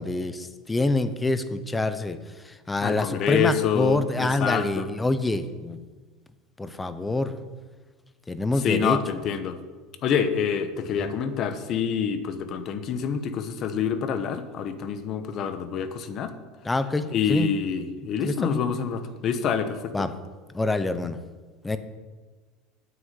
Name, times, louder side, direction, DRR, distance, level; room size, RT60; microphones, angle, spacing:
voice 1, 0.0-5.8 6.6-7.4 8.3-9.2 10.9-11.2 16.6-17.5 18.2-18.6 19.9-20.1 20.5-21.2 21.6-21.8, left 2 dB, 10° left, 12 dB, 0.6 m, -26 dB
voice 2, 2.8-4.9 8.6-9.6 10.0-16.3 17.1-19.9, left 7 dB, 35° left, 10 dB, 0.8 m, -27 dB
9.2 x 6.3 x 8.1 m, 1.4 s
cardioid pair, 155°, 0 cm